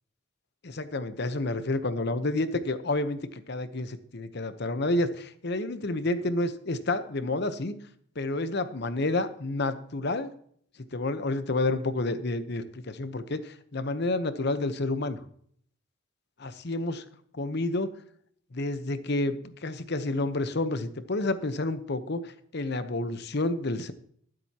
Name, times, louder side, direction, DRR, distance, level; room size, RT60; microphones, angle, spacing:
voice 1, 0.6-7.8 8.2-10.3 10.9-15.2 16.4-17.0 17.3-18.0 18.5-19.4 19.6-23.9, left 2 dB, 55° left, 11 dB, 0.9 m, -29 dB
22.0 x 7.8 x 2.9 m, 0.62 s
head